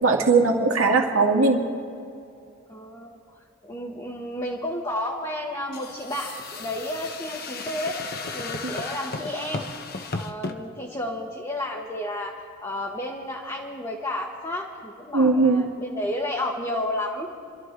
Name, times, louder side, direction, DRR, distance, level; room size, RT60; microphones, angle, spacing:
voice 1, 0.0-1.6 15.1-15.6, right 3 dB, 85° right, 1 dB, 2.0 m, -19 dB
voice 2, 2.7-3.2 3.6-8.0 8.3-9.7 10.1-17.3, left 1 dB, 20° left, -2 dB, 1.2 m, -32 dB
sound 1, 5.7-10.6, left 3 dB, 50° left, 1.1 m, -34 dB
28.5 x 12.5 x 3.7 m, 2.5 s
head